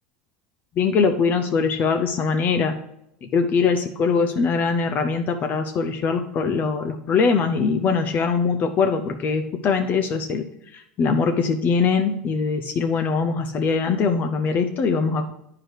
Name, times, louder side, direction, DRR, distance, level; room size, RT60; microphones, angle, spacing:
voice 1, 0.8-2.7 3.2-10.5 10.7-15.3, left 5 dB, 40° left, 7 dB, 0.7 m, -22 dB
9.0 x 4.8 x 4.8 m, 0.77 s
hypercardioid pair, 100°, 4 cm